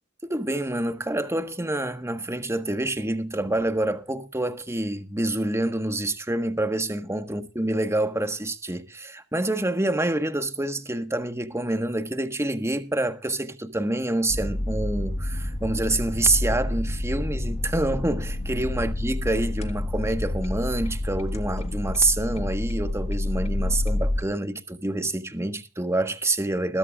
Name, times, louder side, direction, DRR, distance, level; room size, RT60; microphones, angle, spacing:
voice 1, 0.2-26.8, right 2 dB, 15° right, 1.5 m, -27 dB
sound 1, 14.3-24.2, left 1 dB, 35° left, 1.6 m, -28 dB
21.0 x 12.5 x 2.5 m
head